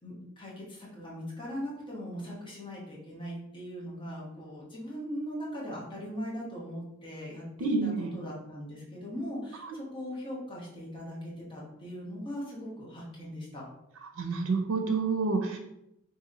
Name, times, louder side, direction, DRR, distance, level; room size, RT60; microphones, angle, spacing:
voice 1, 0.0-13.7, equal, 25° left, -5 dB, 1.1 m, -40 dB
voice 2, 7.6-8.2 14.2-15.6, right 4 dB, 70° right, 3 dB, 0.5 m, -28 dB
3.0 x 2.8 x 3.7 m, 0.83 s
head